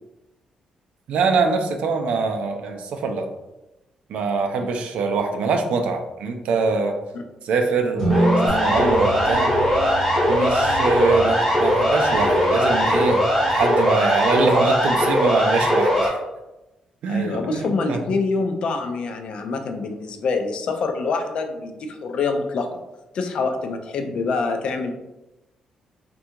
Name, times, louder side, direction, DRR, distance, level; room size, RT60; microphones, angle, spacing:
voice 1, 1.1-3.3 4.1-7.0 7.4-9.5 10.3-13.2 13.5-16.2 17.0-18.0, right 4 dB, 70° right, 5 dB, 0.4 m, -23 dB
sound 1, 8.0-10.4, right 1 dB, 10° left, 1.4 m, -26 dB
Siren, 8.1-16.1, equal, 15° right, 1.1 m, -20 dB
sound 2, 8.5-13.6, left 1 dB, 65° left, 0.8 m, -32 dB
voice 2, 17.1-22.8 23.1-24.9, left 4 dB, 50° left, 6 dB, 0.3 m, -25 dB
3.5 x 2.2 x 2.8 m, 0.99 s
cardioid pair, 170°, 2 cm